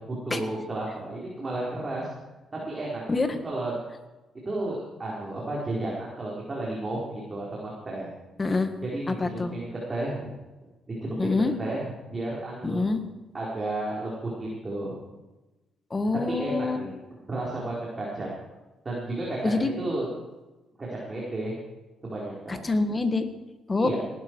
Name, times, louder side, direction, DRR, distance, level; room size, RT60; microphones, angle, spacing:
voice 1, 0.1-2.1 2.7-3.7 4.5-8.1 8.8-10.3 11.0-11.3 11.6-12.8 13.3-14.9 16.3-16.9 17.3-18.3 18.8-20.1 20.8-21.5 22.0-22.6 23.7-24.0, right 2 dB, 30° right, -5 dB, 4.3 m, -32 dB
voice 2, 8.4-8.7 9.1-9.5 11.2-11.5 12.6-13.0 15.9-16.8 19.4-19.7 22.5-23.3 23.7-23.9, left 3 dB, 25° left, 8 dB, 1.7 m, -26 dB
18.5 x 12.0 x 4.7 m, 1.1 s
cardioid pair, 90°, 0 cm